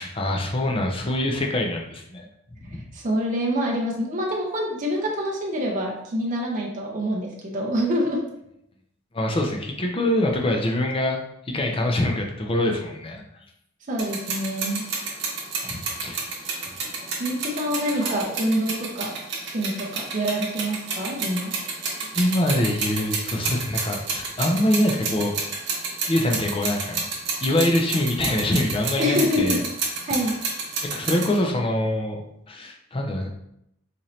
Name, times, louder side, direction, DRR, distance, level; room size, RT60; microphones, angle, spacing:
voice 1, 0.0-2.3 2.6-2.8 9.1-11.2 11.5-13.2 15.6-16.2 22.1-25.4 26.1-27.1 27.4-29.6 30.8-32.2 32.5-33.3, left 1 dB, 25° left, 1 dB, 0.5 m, -24 dB
voice 2, 2.9-8.2 13.9-14.8 17.2-19.1 19.4-21.5 29.0-29.6 30.0-30.3, equal, 35° right, -2 dB, 0.5 m, -26 dB
sound 1, 14.0-31.4, right 4 dB, 55° right, 0.9 m, -30 dB
4.1 x 2.6 x 3.0 m, 0.78 s
head